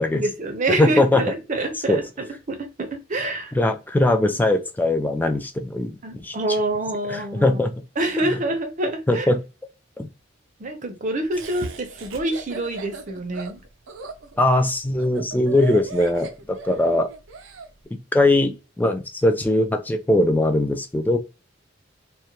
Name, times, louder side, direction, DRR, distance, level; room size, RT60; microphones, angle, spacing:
voice 1, 0.0-2.1 2.5-3.5 6.0-7.6 8.0-9.3 10.6-13.6, right 2 dB, 40° right, 0.6 m, -26 dB
voice 2, 0.8-1.2 1.9-2.0 3.5-6.6 7.1-7.7 8.2-8.4 9.1-9.4 10.0-10.1 14.4-17.1 17.9-21.2, left 1 dB, 10° left, 0.3 m, -21 dB
Laughter, 11.3-17.7, right 4 dB, 85° right, 0.5 m, -38 dB
2.2 x 2.1 x 2.8 m
head